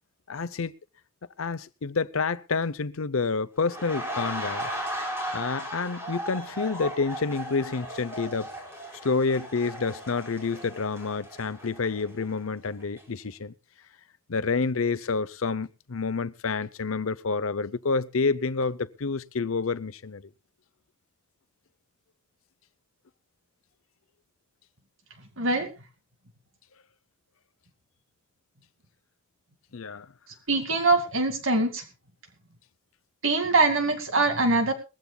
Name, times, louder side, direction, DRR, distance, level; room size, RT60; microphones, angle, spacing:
voice 1, 0.3-0.7 1.4-4.7 5.3-8.5 9.0-13.5 14.3-20.3 29.7-30.1, left 4 dB, 75° left, 0.7 m, -28 dB
sound 1, 3.6-12.5 12.8-13.0, right 1 dB, 10° right, 4.5 m, -36 dB
voice 2, 25.4-25.7 30.5-31.8 33.2-34.7, right 3 dB, 65° right, 2.3 m, -23 dB
21.0 x 15.5 x 2.3 m
head